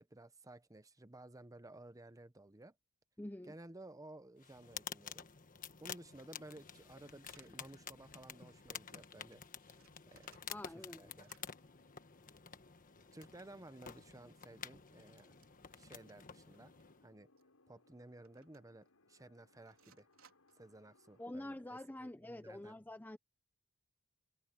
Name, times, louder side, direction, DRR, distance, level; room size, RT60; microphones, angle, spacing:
voice 1, 0.0-2.7 3.5-5.3 5.8-9.4 10.1-11.3 13.1-15.3 15.8-16.7 17.0-17.3 17.7-20.1 20.6-22.7, right 1 dB, 15° right, 0.9 m, -56 dB
voice 2, 3.2-3.5 10.5-11.1 21.2-23.2, left 1 dB, 10° left, 0.6 m, -47 dB
sound 1, 4.4-17.1, left 7 dB, 40° left, 1.4 m, -51 dB
sound 2, 7.2-7.5 8.0-8.2 8.5-8.6 8.8-9.0 9.3-10.9 11.1-11.5 12.9-13.9 14.4-14.5 15.3-15.7 16.0-16.1 16.5-16.8 17.4-17.5 18.2-18.9 19.7-20.7, right 7 dB, 65° right, 4.3 m, -70 dB
sound 3, 11.4-21.3, left 2 dB, 75° left, 6.4 m, -72 dB
head